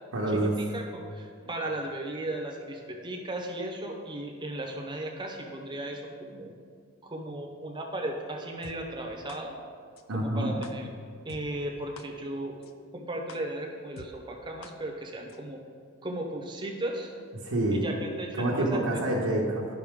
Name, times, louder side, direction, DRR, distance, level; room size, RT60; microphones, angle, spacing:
voice 1, 0.1-0.5 10.1-10.5 17.3-17.8 18.4-19.7, right 1 dB, 75° right, -4 dB, 0.9 m, -27 dB
voice 2, 0.7-6.5 7.0-9.6 10.1-10.9 11.2-12.5 12.9-15.6 16.0-17.1 17.7-19.0, right 1 dB, 20° right, 1 dB, 0.8 m, -36 dB
sound 1, 8.6-8.7 9.3-9.4 10.0-10.1 10.6-10.7 11.3-11.4 12.0-12.1 12.6-12.7 13.3-13.4 14.0-14.1 14.6-14.7 15.3-15.4, left 5 dB, 65° left, 0.5 m, -45 dB
10.5 x 5.5 x 3.7 m, 2.1 s
head